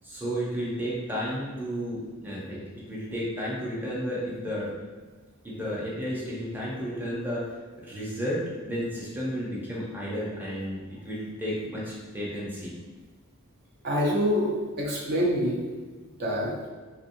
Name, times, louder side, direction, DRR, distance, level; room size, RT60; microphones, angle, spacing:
voice 1, 0.0-2.6 2.9-4.7 5.4-12.7, equal, 10° right, -6 dB, 0.7 m, -32 dB
voice 2, 13.8-15.6 16.2-16.5, equal, 45° right, -3 dB, 0.6 m, -26 dB
3.4 x 2.8 x 2.6 m, 1.4 s
head